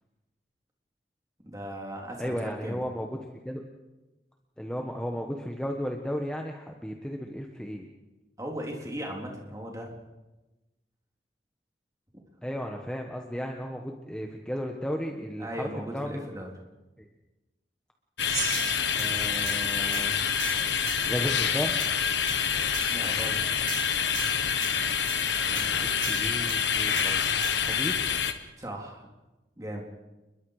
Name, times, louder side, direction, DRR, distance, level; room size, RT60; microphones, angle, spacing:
voice 1, 1.5-2.8 8.4-10.0 15.4-16.5 22.9-23.4 28.6-29.1 29.6-29.9, equal, 20° right, 0 dB, 3.7 m, -37 dB
voice 2, 2.2-3.2 3.4-3.6 4.6-7.9 12.4-16.2 17.0-17.1 18.9-20.2 21.1-21.8 25.4-27.3 27.5-28.0, equal, 5° left, 2 dB, 1.4 m, -34 dB
sound 1, 18.2-28.3, left 7 dB, 90° left, 1.5 m, -27 dB
Gong, 18.3-20.9, right 5 dB, 55° right, 4.9 m, -39 dB
sound 2, 18.5-19.1 19.5-19.6 19.9-20.1 20.4-21.0 21.8-21.9 22.3-22.4 22.7-23.0 23.7-24.7 25.1-25.2 25.6-25.7 26.0-26.6 27.0-27.1 27.4-27.5, right 9 dB, 85° right, 4.0 m, -39 dB
29.5 x 22.0 x 5.0 m, 1.1 s
head